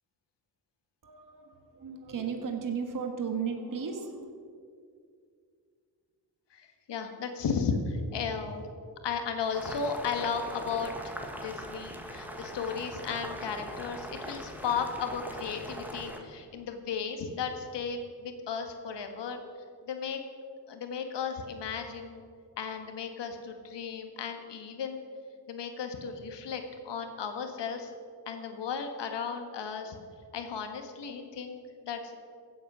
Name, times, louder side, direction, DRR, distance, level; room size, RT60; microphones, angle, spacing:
voice 1, 1.0-4.3, right 6 dB, 50° right, 4 dB, 1.6 m, -35 dB
voice 2, 6.5-8.7 9.0-19.4 19.8-20.2 20.7-22.2 22.6-25.0 25.5-27.9 28.2-30.0 30.3-32.2, left 6 dB, 85° left, 5 dB, 1.7 m, -35 dB
Boiling, 9.4-16.2, equal, 5° right, 1.5 m, -41 dB
15.5 x 8.5 x 6.2 m, 2.2 s
cardioid pair, 105°, 41 cm